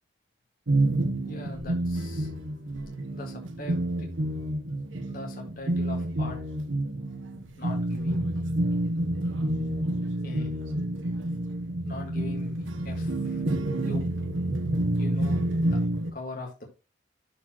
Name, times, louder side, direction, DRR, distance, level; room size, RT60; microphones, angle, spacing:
sound 1, 0.7-16.1, right 1 dB, 90° right, 1.1 m, -28 dB
voice 1, 1.2-2.3 3.1-4.1 5.1-6.4 7.6-8.3 10.2-10.6 11.8-13.4 13.8-14.0 15.0-15.8 16.1-16.6, left 2 dB, 50° left, 0 dB, 1.8 m, -40 dB
12.5 x 4.2 x 3.0 m, 0.29 s
head